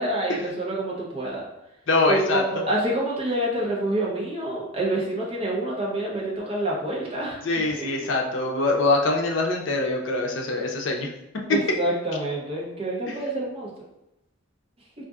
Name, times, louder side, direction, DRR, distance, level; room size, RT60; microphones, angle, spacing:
voice 1, 0.0-1.4 2.1-7.9 11.5-13.7, right 1 dB, 30° right, -4 dB, 0.8 m, -27 dB
voice 2, 1.9-2.6 7.4-11.1, left 2 dB, 65° left, 1 dB, 0.5 m, -24 dB
3.8 x 2.5 x 2.4 m, 0.88 s
head